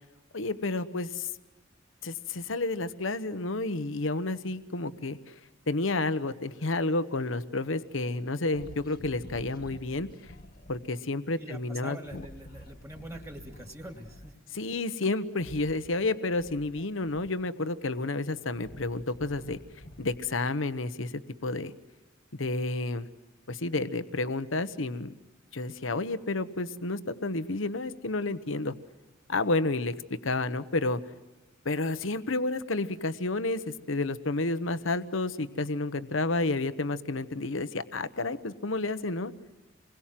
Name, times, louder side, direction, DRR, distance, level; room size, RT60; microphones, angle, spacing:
voice 1, 0.3-1.3 2.0-5.3 5.7-10.1 10.7-12.3 14.5-19.6 20.0-21.7 22.4-23.1 23.5-25.1 25.5-28.7 29.3-31.0 31.6-39.3, left 2 dB, 80° left, 12 dB, 1.1 m, -30 dB
sound 1, 8.5-10.9 12.0-14.4 15.3-17.6 18.2-20.6, left 1 dB, 50° left, 1.7 m, -49 dB
voice 2, 11.4-14.3, right 1 dB, 15° right, 5 dB, 2.4 m, -44 dB
28.5 x 22.0 x 7.6 m, 1.1 s
head